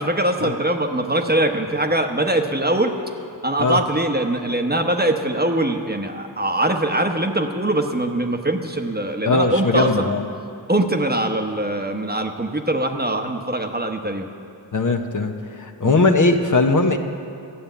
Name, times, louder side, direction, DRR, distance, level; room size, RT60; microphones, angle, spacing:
voice 1, 0.0-2.9 3.4-10.1 10.7-14.3 15.8-16.0, right 1 dB, 20° right, 4 dB, 1.1 m, -22 dB
voice 2, 9.2-10.3 14.7-17.0, left 3 dB, 40° left, 4 dB, 1.0 m, -19 dB
13.0 x 7.0 x 9.0 m, 2.5 s
cardioid pair, 45°, 45 cm